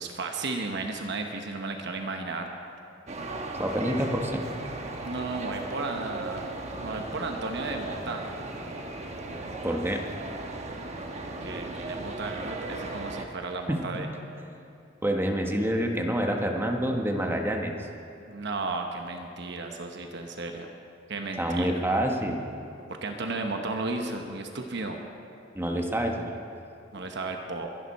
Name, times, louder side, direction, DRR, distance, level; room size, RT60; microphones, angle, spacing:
voice 1, 0.0-2.5 5.0-6.5 6.8-8.2 11.4-14.1 18.2-20.7 21.1-21.8 23.0-25.0 26.9-27.7, right 3 dB, 60° right, 4 dB, 1.0 m, -34 dB
sound 1, 3.1-13.3, right 2 dB, 35° right, 1.1 m, -37 dB
voice 2, 3.6-4.4 9.6-10.0 13.7-13.9 14.4-14.7 15.0-17.7 21.4-22.4 25.5-26.4, equal, 10° right, 2 dB, 1.0 m, -27 dB
22.0 x 11.0 x 4.2 m, 2.6 s
head